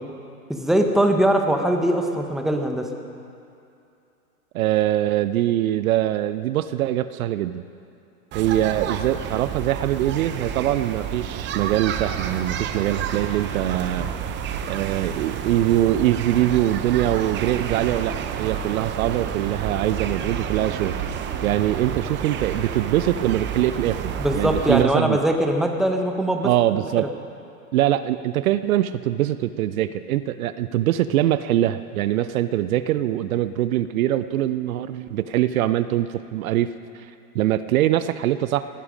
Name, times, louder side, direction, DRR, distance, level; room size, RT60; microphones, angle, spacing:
voice 1, 0.5-2.9 24.2-26.5 27.0-27.1, right 1 dB, ahead, 4 dB, 1.0 m, -21 dB
voice 2, 4.5-7.6 8.3-14.1 14.7-21.1 21.4-25.2 26.4-27.1 27.7-36.7 36.9-37.1 37.3-38.6, right 13 dB, 65° right, 13 dB, 0.6 m, -23 dB
sound 1, 8.3-24.8, right 8 dB, 25° right, 0.8 m, -30 dB
19.5 x 10.5 x 5.1 m, 2.6 s
hypercardioid pair, 115°, 45 cm